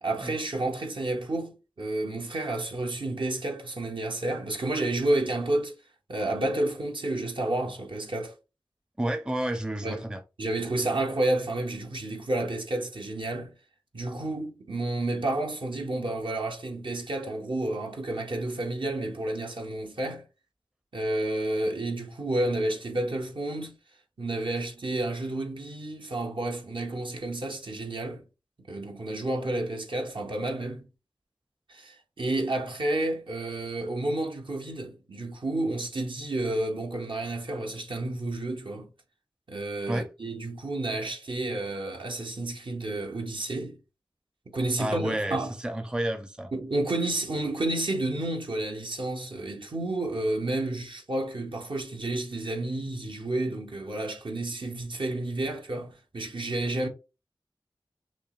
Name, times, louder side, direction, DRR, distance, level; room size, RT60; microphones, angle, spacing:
voice 1, 0.0-5.8 6.1-8.3 9.8-10.0 10.4-13.5 13.9-20.2 20.9-23.8 24.2-28.2 28.7-30.9 31.7-38.9 39.5-43.8 44.5-45.5 46.5-56.9, right 2 dB, 65° right, 0.9 m, -30 dB
voice 2, 9.0-10.2 39.9-40.1 44.8-46.5, right 1 dB, 10° right, 0.5 m, -30 dB
5.9 x 2.0 x 2.4 m
wide cardioid pair, 65°, 9 cm